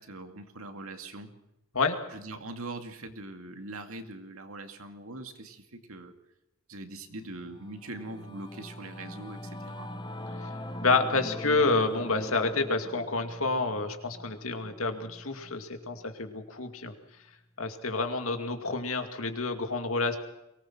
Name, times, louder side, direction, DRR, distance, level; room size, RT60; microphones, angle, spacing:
voice 1, 0.0-1.3 2.1-6.1 6.7-9.9, right 2 dB, 80° right, 6 dB, 2.3 m, -42 dB
Singing / Musical instrument, 7.2-16.9, left 1 dB, 20° left, 1.2 m, -42 dB
voice 2, 10.8-16.9 17.6-20.2, left 3 dB, 75° left, 6 dB, 2.4 m, -29 dB
23.5 x 19.0 x 6.1 m, 0.90 s
head